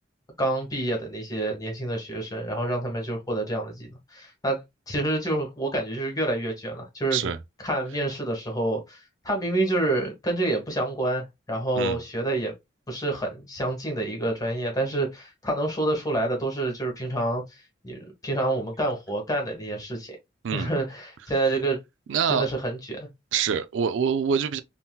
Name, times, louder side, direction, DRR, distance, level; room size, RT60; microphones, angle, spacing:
voice 1, 0.4-4.6 4.9-7.3 7.6-12.5 12.9-20.2 20.5-21.8 22.3-23.1, right 2 dB, 20° left, 1.3 m, -28 dB
voice 2, 22.1-22.5 23.3-24.6, right 7 dB, 75° right, 0.4 m, -25 dB
3.6 x 2.8 x 2.2 m
head